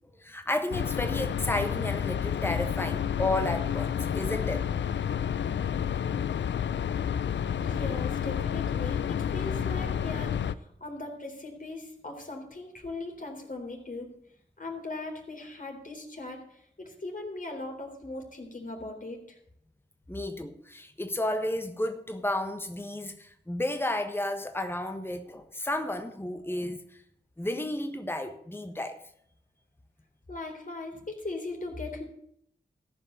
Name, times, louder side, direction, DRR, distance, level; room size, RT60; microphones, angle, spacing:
voice 1, 0.2-4.6 20.1-26.8 27.4-29.0, left 1 dB, 10° left, 1.4 m, -32 dB
sound 1, 0.7-10.5, left 8 dB, 85° left, 0.5 m, -30 dB
voice 2, 7.6-14.1 14.6-19.4 30.3-32.0, left 2 dB, 45° left, 3.8 m, -39 dB
14.0 x 5.5 x 8.4 m
cardioid pair, 45°, 18 cm